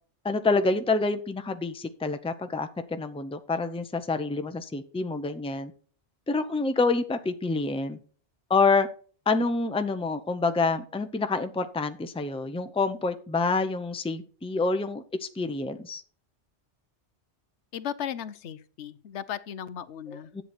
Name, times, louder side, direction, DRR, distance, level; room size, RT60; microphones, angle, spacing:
voice 1, 0.2-5.7 6.3-8.0 8.5-8.9 9.3-16.0 20.1-20.4, left 3 dB, 5° left, 9 dB, 0.6 m, -27 dB
voice 2, 17.7-20.4, left 9 dB, 85° left, 16 dB, 1.0 m, -36 dB
10.5 x 8.1 x 4.3 m, 0.43 s
omnidirectional pair, 1.1 m